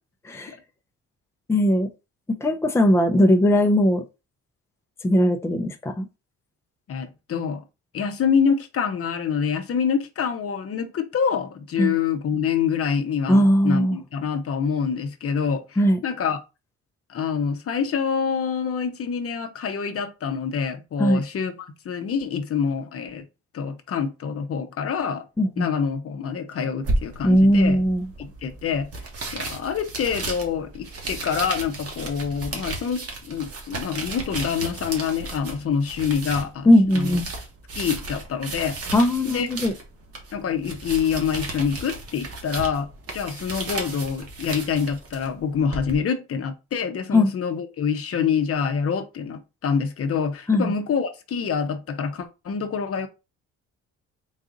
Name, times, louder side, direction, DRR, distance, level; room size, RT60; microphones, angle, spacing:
voice 1, 0.2-0.6 1.5-1.9 2.4-4.0 5.0-6.1 11.8-11.9 13.3-14.0 15.8-16.0 21.0-21.2 25.4-25.7 27.2-28.1 36.7-37.3 38.9-39.7 47.1-47.3 50.5-50.7, left 1 dB, 10° left, 0.6 m, -19 dB
voice 2, 6.9-7.6 7.9-15.6 16.0-16.4 17.1-23.2 23.5-25.2 25.6-27.8 28.2-28.9 29.3-36.7 36.9-37.2 37.8-38.8 39.2-39.5 40.3-53.1, left 6 dB, 50° left, 0.8 m, -26 dB
sound 1, 26.8-45.9, right 2 dB, 50° right, 1.4 m, -34 dB
4.0 x 2.5 x 3.8 m
cardioid pair, 90°, 30 cm